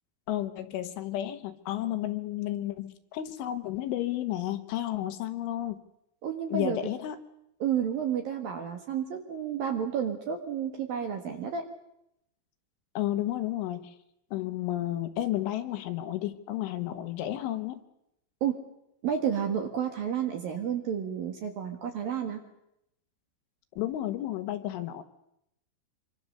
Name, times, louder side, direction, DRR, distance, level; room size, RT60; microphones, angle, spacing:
voice 1, 0.3-5.8 6.5-7.2 13.0-14.0 14.3-17.8 23.8-25.0, left 13 dB, 75° left, 8 dB, 3.5 m, -32 dB
voice 2, 6.2-6.8 7.6-11.6 18.4-18.6 19.0-22.4, right 8 dB, 60° right, 4 dB, 2.7 m, -31 dB
26.0 x 24.5 x 6.8 m, 0.81 s
omnidirectional pair, 6.0 m